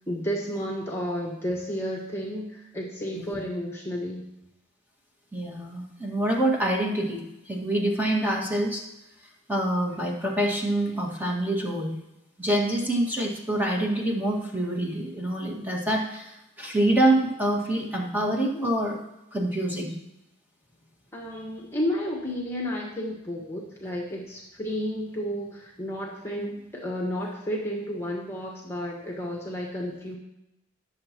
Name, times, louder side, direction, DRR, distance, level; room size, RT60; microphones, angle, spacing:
voice 1, 0.1-4.3 21.1-30.2, equal, 10° left, -1 dB, 1.6 m, -32 dB
voice 2, 5.3-7.2 7.5-8.8 9.5-11.9 12.4-19.0 19.3-20.0, right 1 dB, 10° right, -1 dB, 1.9 m, -26 dB
20.0 x 7.3 x 3.0 m, 0.90 s
head